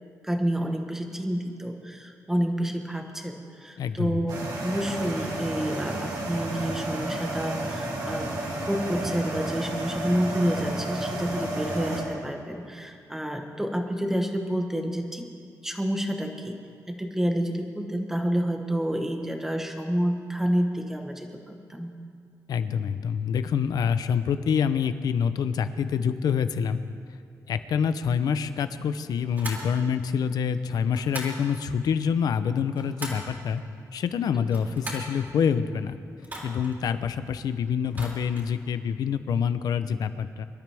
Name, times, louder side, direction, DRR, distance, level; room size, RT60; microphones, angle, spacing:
voice 1, 0.2-8.3 8.6-15.3 15.6-16.6 16.9-21.9, equal, 5° right, 4 dB, 1.2 m, -29 dB
voice 2, 3.8-4.2 22.5-26.8 27.5-33.6 33.9-36.0 36.4-40.4, left 7 dB, 80° left, 11 dB, 0.7 m, -26 dB
sound 1, 4.3-12.0, right 1 dB, 75° right, 2.9 m, -32 dB
sound 2, 29.3-29.7 30.9-31.4 32.5-33.3 34.4-35.1 36.2-36.8 37.8-38.5, right 1 dB, 30° right, 3.3 m, -38 dB
25.0 x 12.5 x 3.5 m, 2.3 s
wide cardioid pair, 165°, 7 cm